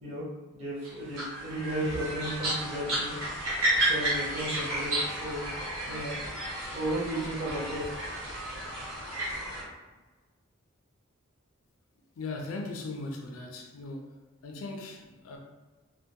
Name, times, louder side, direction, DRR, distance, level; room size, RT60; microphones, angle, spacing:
voice 1, 0.5-3.1 3.9-5.4 5.9-6.2 6.7-7.8, right 1 dB, 30° right, -8 dB, 0.6 m, -34 dB
sound 1, 0.8-9.6, right 1 dB, 80° right, 0.9 m, -32 dB
voice 2, 12.2-14.1 14.4-15.4, left 3 dB, 85° left, 1 dB, 0.4 m, -38 dB
2.3 x 2.2 x 2.8 m, 1.2 s
head